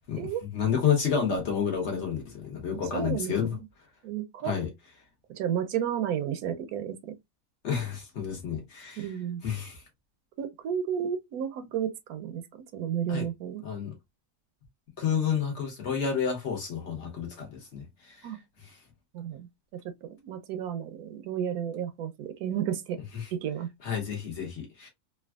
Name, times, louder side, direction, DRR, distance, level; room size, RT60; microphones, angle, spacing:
voice 1, 0.0-3.6 4.4-4.7 7.6-9.0 9.4-9.8 13.1-13.3 13.6-14.0 15.0-18.3 18.6-18.8 23.1-23.3 23.8-24.9, left 7 dB, 50° left, 1.2 m, -30 dB
voice 2, 2.7-3.3 4.0-4.5 5.3-7.2 9.0-9.4 10.4-12.4 12.7-13.6 18.2-18.4 19.1-19.5 19.7-23.0 23.3-23.7, right 9 dB, 75° right, 1.0 m, -32 dB
3.3 x 2.3 x 2.2 m
omnidirectional pair, 1.6 m